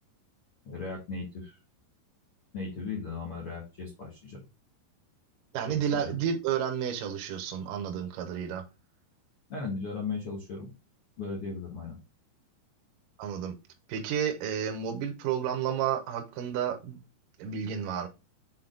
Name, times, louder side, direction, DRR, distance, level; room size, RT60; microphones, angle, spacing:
voice 1, 0.6-1.6 2.5-4.4 5.7-6.1 9.5-10.7 11.2-12.0, left 4 dB, 55° left, 1.6 m, -37 dB
voice 2, 5.5-8.6 13.2-13.5 13.9-17.0 17.4-18.1, right 8 dB, 85° right, 1.9 m, -31 dB
7.6 x 4.2 x 3.8 m
omnidirectional pair, 5.4 m